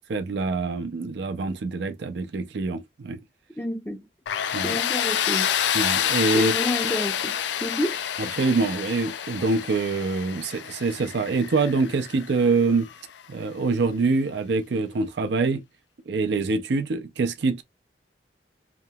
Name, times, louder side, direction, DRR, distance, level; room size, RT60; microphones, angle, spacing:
voice 1, 0.1-3.2 4.5-4.8 5.7-6.5 8.2-12.9 13.3-15.6 16.1-17.6, right 3 dB, 75° right, 0.5 m, -25 dB
voice 2, 3.6-4.0 4.6-5.5 6.3-7.4 7.6-8.0, left 1 dB, 10° left, 0.5 m, -29 dB
Tools, 4.3-13.0, left 9 dB, 85° left, 0.4 m, -28 dB
2.9 x 2.7 x 2.2 m
head